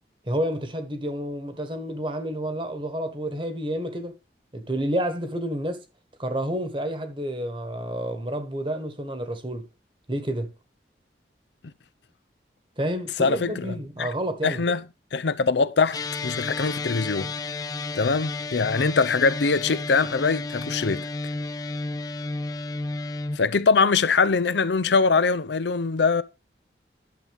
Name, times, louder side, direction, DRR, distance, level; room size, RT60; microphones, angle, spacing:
voice 1, 0.3-4.2 4.5-5.8 6.2-9.7 10.1-10.5 12.8-14.6, right 1 dB, 30° right, 1.4 m, -29 dB
voice 2, 13.2-13.5 14.0-14.1 14.4-14.8 15.1-17.3 17.9-21.1 23.4-26.2, left 4 dB, 75° left, 0.6 m, -22 dB
sound 1, 15.9-23.4, left 3 dB, 20° left, 0.5 m, -32 dB
11.0 x 7.0 x 3.5 m
head